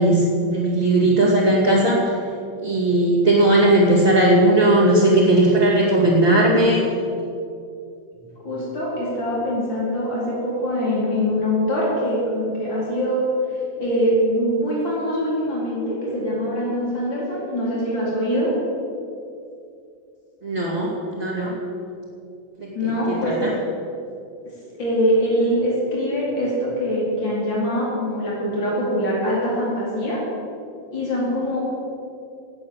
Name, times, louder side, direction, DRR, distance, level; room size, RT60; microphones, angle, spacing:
voice 1, 0.0-2.1 2.6-6.9 20.4-21.6 22.6-23.5, right 1 dB, 20° right, -7 dB, 2.6 m, -18 dB
voice 2, 8.4-13.3 13.8-18.5 22.7-23.4 24.8-30.2 30.9-31.6, equal, 90° left, -6 dB, 5.2 m, -23 dB
19.0 x 8.6 x 7.4 m, 2.5 s
omnidirectional pair, 2.0 m